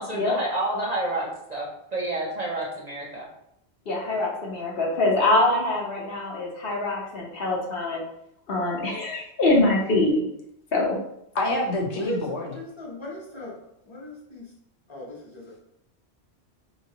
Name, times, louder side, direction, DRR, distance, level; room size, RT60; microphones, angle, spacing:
voice 1, 0.0-3.3, right 1 dB, 45° right, -3 dB, 0.6 m, -29 dB
voice 2, 3.9-8.0 8.5-10.2 10.7-10.9, left 2 dB, 60° left, -2 dB, 0.9 m, -24 dB
voice 3, 11.3-12.5, left 1 dB, 85° left, 0 dB, 1.0 m, -26 dB
voice 4, 11.9-13.5 13.9-14.5 14.9-15.5, left 1 dB, 25° left, -4 dB, 1.0 m, -38 dB
3.2 x 2.9 x 2.8 m, 0.78 s
omnidirectional pair, 1.1 m